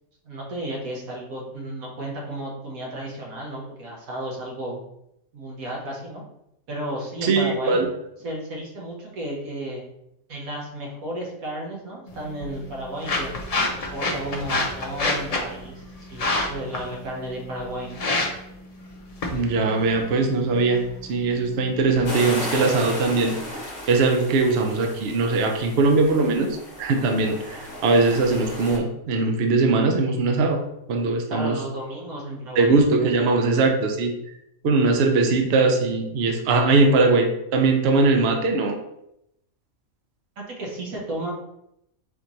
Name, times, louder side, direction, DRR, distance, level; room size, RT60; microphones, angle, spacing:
voice 1, 0.2-4.8 5.3-6.2 6.7-7.8 8.2-9.9 10.3-13.3 13.6-18.1 31.3-33.4 40.4-41.3, right 1 dB, 85° right, -2 dB, 1.6 m, -33 dB
voice 2, 7.2-7.9 19.3-20.8 21.1-23.4 23.9-26.5 26.8-30.6 30.9-31.6 32.6-34.1 34.6-38.8, right 3 dB, 60° right, 3 dB, 0.8 m, -20 dB
sound 1, 12.1-22.1, left 2 dB, 55° left, 0.4 m, -30 dB
sound 2, 22.1-28.8, left 1 dB, 35° left, 0.9 m, -35 dB
4.3 x 3.0 x 4.0 m, 0.80 s
omnidirectional pair, 1.4 m